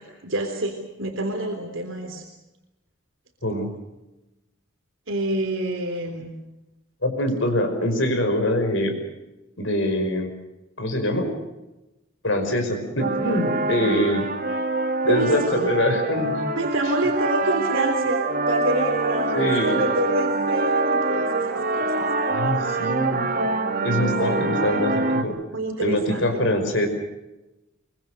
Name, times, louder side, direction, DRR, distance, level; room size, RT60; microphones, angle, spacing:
voice 1, 0.0-2.3 5.1-6.3 15.1-15.5 16.6-22.1 25.5-26.3, right 1 dB, 65° right, 3 dB, 3.5 m, -27 dB
voice 2, 7.0-8.9 9.6-10.3 10.8-11.4 12.2-14.3 15.0-16.4 19.3-19.8 22.3-23.3 23.8-25.3 25.8-26.9, left 1 dB, 60° left, 5 dB, 5.4 m, -24 dB
sound 1, 13.0-25.2, right 3 dB, 45° right, 1.7 m, -25 dB
24.0 x 23.5 x 6.6 m, 0.98 s
head